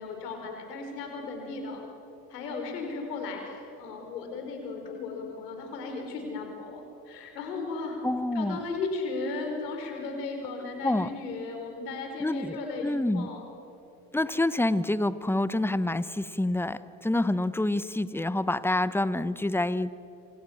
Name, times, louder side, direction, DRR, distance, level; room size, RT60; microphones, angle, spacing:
voice 1, 0.0-1.8 2.3-8.0 8.3-13.5, left 3 dB, 85° left, 3 dB, 4.9 m, -36 dB
voice 2, 8.0-8.6 10.8-11.1 12.2-13.3 14.1-19.9, left 1 dB, 5° left, 15 dB, 1.1 m, -27 dB
27.0 x 26.5 x 7.3 m, 2.9 s
hypercardioid pair, 65°, 47 cm